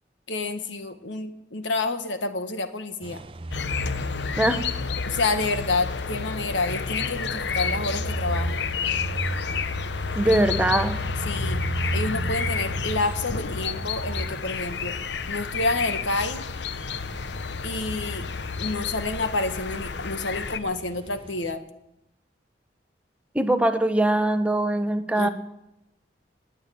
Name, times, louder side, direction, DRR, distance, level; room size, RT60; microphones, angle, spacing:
voice 1, 0.3-3.2 5.0-8.7 11.2-11.6 11.9-14.9 15.3-16.4 17.6-18.2 18.6-21.6 25.1-25.3, left 3 dB, 90° left, 8 dB, 1.6 m, -28 dB
sound 1, 3.0-21.5, right 2 dB, 30° right, 0.6 m, -35 dB
sound 2, 3.5-20.6, left 6 dB, 70° left, 0.8 m, -30 dB
voice 2, 10.1-10.9 23.3-25.3, right 1 dB, 5° right, 8 dB, 0.9 m, -22 dB
19.0 x 8.8 x 8.5 m, 0.87 s
head